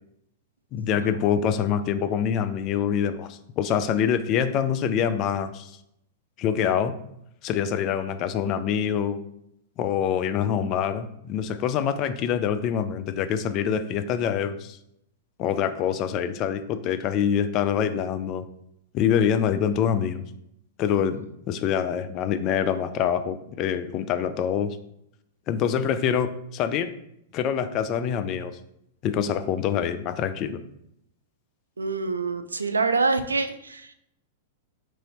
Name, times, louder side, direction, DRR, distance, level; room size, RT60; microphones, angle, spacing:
voice 1, 0.7-5.7 6.4-6.9 7.4-9.2 9.8-14.8 15.4-18.4 18.9-20.2 20.8-24.8 25.5-26.9 27.3-28.5 29.0-30.6, left 8 dB, 40° left, 10 dB, 0.3 m, -25 dB
voice 2, 31.8-33.9, right 4 dB, 85° right, 9 dB, 0.3 m, -26 dB
3.1 x 2.7 x 4.1 m, 0.76 s
figure-of-eight pair, 100°, 0 cm